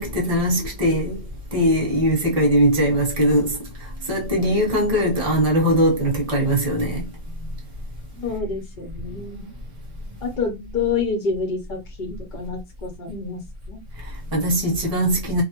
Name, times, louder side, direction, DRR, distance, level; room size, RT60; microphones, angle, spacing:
voice 1, 0.0-7.1 8.1-8.3 14.0-15.4, equal, 25° right, 1.0 m, -21 dB
voice 2, 8.2-9.5 10.2-13.4 13.7-13.8, left 4 dB, 75° left, 0.4 m, -28 dB
2.7 x 2.0 x 2.8 m
omnidirectional pair, 1.8 m